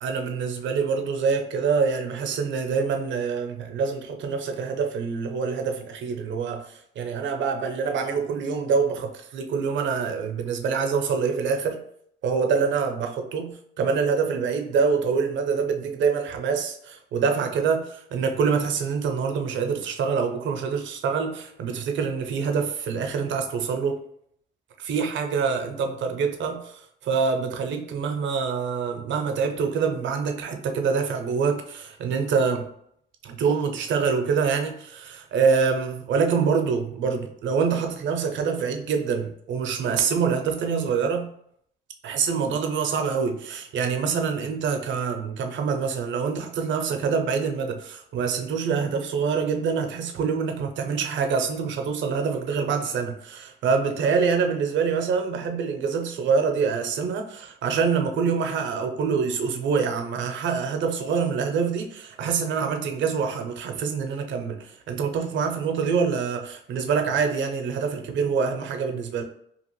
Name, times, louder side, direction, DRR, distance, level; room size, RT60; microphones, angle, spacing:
voice 1, 0.0-11.8 12.2-24.0 24.8-32.7 33.2-41.3 42.0-69.2, right 5 dB, 70° right, 5 dB, 0.6 m, -25 dB
2.8 x 2.5 x 3.0 m, 0.69 s
cardioid pair, 90°, 20 cm